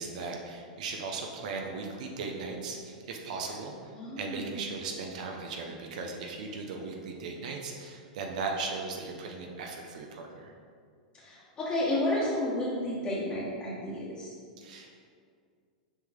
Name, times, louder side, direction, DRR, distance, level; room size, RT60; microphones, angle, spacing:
voice 1, 0.0-10.5 14.6-15.0, right 4 dB, 65° right, 1 dB, 0.8 m, -37 dB
voice 2, 4.0-4.6 11.2-14.3, left 1 dB, 30° left, -9 dB, 1.6 m, -31 dB
6.7 x 4.8 x 3.6 m, 2.2 s
hypercardioid pair, 110°, 4 cm